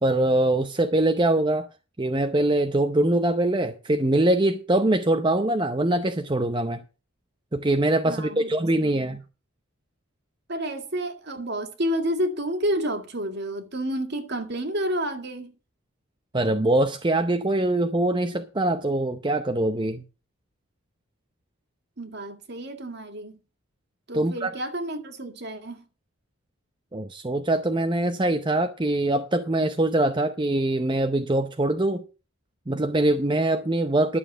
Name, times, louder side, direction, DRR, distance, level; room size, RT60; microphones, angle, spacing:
voice 1, 0.0-1.7 2.0-6.8 7.5-9.2 16.3-20.0 24.1-24.5 26.9-32.0 32.7-34.2, right 1 dB, 20° right, 0.7 m, -23 dB
voice 2, 8.1-9.1 10.5-15.5 22.0-23.4 24.1-25.8, equal, 50° right, 2.0 m, -30 dB
11.5 x 7.0 x 6.7 m
head